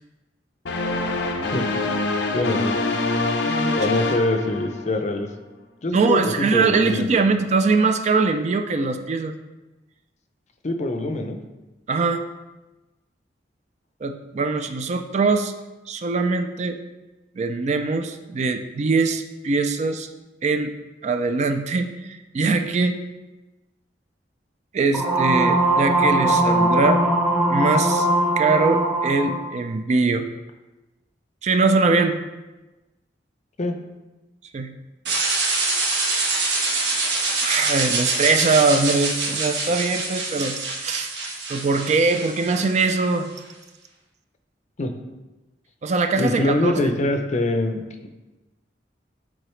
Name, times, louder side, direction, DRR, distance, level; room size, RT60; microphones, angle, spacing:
sound 1, 0.6-5.1, left 2 dB, 85° left, 0.6 m, -25 dB
voice 1, 2.3-2.7 3.8-5.3 5.8-7.1 10.6-11.4 33.6-33.8 44.8-44.9 46.2-48.1, left 2 dB, 40° left, 6 dB, 0.5 m, -24 dB
voice 2, 3.4-4.0 5.9-9.3 11.9-12.2 14.0-15.5 15.9-16.8 17.4-20.1 20.4-20.7 21.0-23.0 24.7-27.0 27.5-28.1 28.4-30.3 31.4-32.2 34.5-34.7 37.4-41.1 41.5-43.3 45.8-46.9, right 4 dB, 40° right, 8 dB, 0.3 m, -22 dB
sound 2, 24.9-29.4, right 1 dB, 10° right, 0.8 m, -20 dB
sound 3, 35.0-43.1, right 3 dB, 80° right, 1.1 m, -25 dB
7.8 x 3.8 x 3.2 m, 1.1 s
head